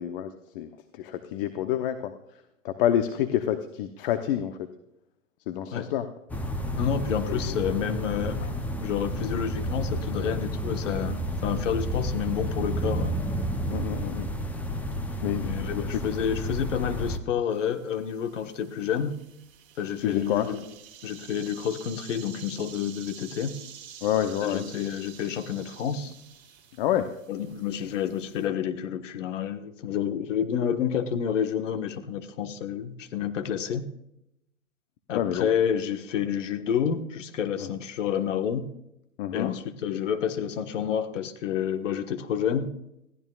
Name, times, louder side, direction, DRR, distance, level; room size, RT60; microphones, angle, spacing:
voice 1, 0.0-2.1 2.6-4.6 5.5-6.1 7.3-7.6 8.4-8.5 13.7-14.3 15.2-15.6 20.0-20.5 24.0-24.6 26.8-27.1 35.1-35.5 37.6-37.7 39.2-39.5, left 10 dB, 40° left, 9 dB, 0.9 m, -28 dB
sound 1, 6.3-17.2, equal, 5° left, 0.6 m, -31 dB
voice 2, 6.8-8.4 8.8-13.1 15.4-19.1 19.8-20.6 21.0-23.5 24.4-26.1 27.3-33.9 35.1-38.7 39.3-42.7, left 8 dB, 60° left, 7 dB, 1.6 m, -29 dB
sound 2, 17.5-28.5, right 8 dB, 35° right, 4.6 m, -49 dB
20.5 x 15.5 x 2.4 m, 0.83 s
hypercardioid pair, 130°, 43 cm